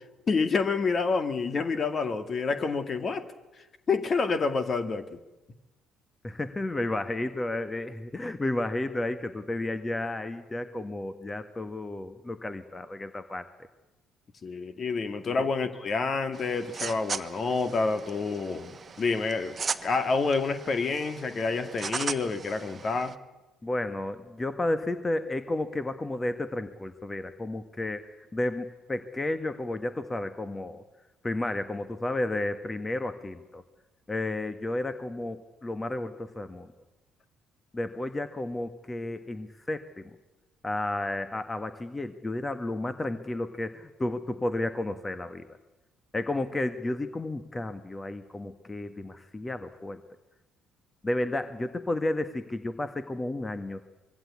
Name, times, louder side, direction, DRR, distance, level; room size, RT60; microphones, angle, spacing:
voice 1, 0.3-3.3 3.9-5.2 14.4-23.1, left 4 dB, 40° left, 10 dB, 2.1 m, -28 dB
voice 2, 6.2-13.5 15.4-15.5 23.6-28.0 28.3-30.8 31.2-33.6 34.1-36.7 37.7-40.0 40.6-45.5 46.1-50.0 51.0-53.8, left 2 dB, 20° left, 10 dB, 1.6 m, -32 dB
sound 1, 16.3-23.1, right 5 dB, 35° right, 1.3 m, -38 dB
25.0 x 22.0 x 8.5 m, 1.1 s
figure-of-eight pair, 50°, 0 cm